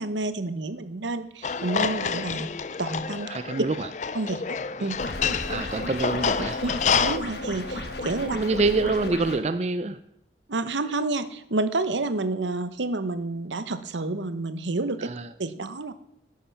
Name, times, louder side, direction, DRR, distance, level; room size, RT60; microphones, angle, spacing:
voice 1, 0.0-2.5 2.8-3.3 4.1-4.4 4.8-5.0 6.6-8.4 10.5-15.1 15.4-15.9, right 2 dB, 85° right, 12 dB, 0.9 m, -29 dB
sound 1, 1.4-7.2, left 6 dB, 40° left, 0.4 m, -28 dB
voice 2, 3.3-3.9 5.5-6.6 8.3-10.0 15.0-15.3, right 3 dB, 35° right, 12 dB, 0.4 m, -26 dB
sound 2, 5.0-9.4, left 1 dB, 65° left, 1.6 m, -34 dB
10.5 x 8.8 x 5.8 m, 0.76 s
head